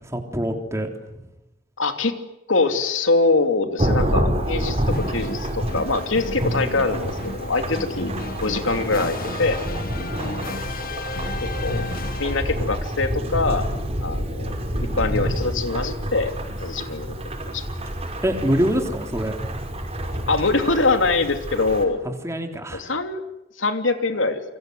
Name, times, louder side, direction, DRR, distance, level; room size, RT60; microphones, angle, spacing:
voice 1, 0.1-0.9 18.2-19.4 22.0-22.8, equal, 15° right, 4 dB, 3.4 m, -24 dB
voice 2, 1.8-2.1 2.5-8.1 8.4-9.6 11.6-11.8 12.2-13.7 14.0-14.5 15.0-16.3 16.6-17.1 17.5-17.6 20.3-22.0 22.7-23.2 23.6-24.4, left 3 dB, 80° left, 7 dB, 3.0 m, -23 dB
Thunderstorm / Rain, 3.8-21.8, equal, 30° right, 5.6 m, -28 dB
sound 1, 4.9-12.8, left 2 dB, 50° left, 1.6 m, -33 dB
29.0 x 24.5 x 8.0 m, 0.92 s
head